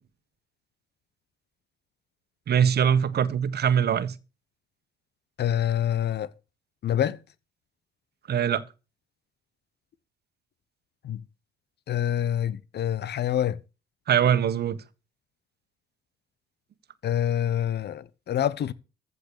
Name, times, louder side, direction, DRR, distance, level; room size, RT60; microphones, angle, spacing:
voice 1, 2.5-4.1 8.3-8.6 14.1-14.8, right 8 dB, 50° right, 1.4 m, -22 dB
voice 2, 5.4-6.3 6.8-7.2 11.0-11.2 11.9-13.6 17.0-18.7, left 10 dB, 55° left, 1.1 m, -26 dB
15.0 x 6.8 x 6.8 m
hypercardioid pair, 55°, 20 cm